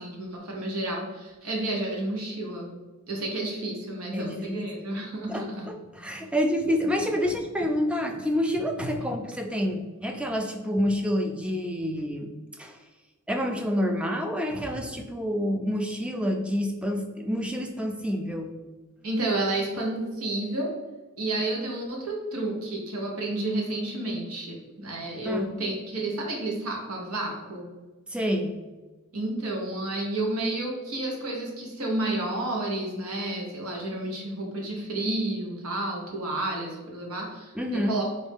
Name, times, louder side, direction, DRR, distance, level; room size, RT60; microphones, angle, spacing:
voice 1, 0.0-2.7 3.1-5.6 19.0-20.8 21.2-27.7 29.1-37.5 37.9-38.0, right 2 dB, 75° right, -1 dB, 1.1 m, -31 dB
voice 2, 4.1-4.6 5.3-12.3 12.6-12.8 13.3-18.5 25.2-25.5 28.1-28.5 37.6-38.0, equal, 5° right, 4 dB, 0.4 m, -28 dB
4.0 x 2.6 x 3.6 m, 1.2 s
head